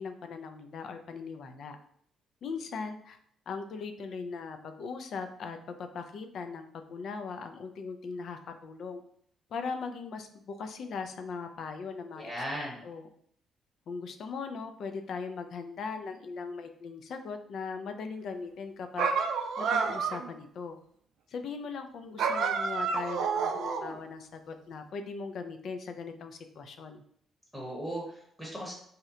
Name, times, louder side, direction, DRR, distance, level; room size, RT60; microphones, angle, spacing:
voice 1, 0.0-1.8 2.4-3.2 3.5-9.0 9.5-13.1 13.9-19.1 19.6-20.8 21.3-27.0, left 5 dB, 65° left, 7 dB, 0.3 m, -39 dB
voice 2, 12.2-12.8 27.5-28.7, right 1 dB, 10° left, -4 dB, 0.9 m, -37 dB
sound 1, 19.0-20.3 22.2-24.0, right 5 dB, 75° right, 0.3 m, -29 dB
2.7 x 2.1 x 3.6 m, 0.65 s
cardioid pair, 105°, 0 cm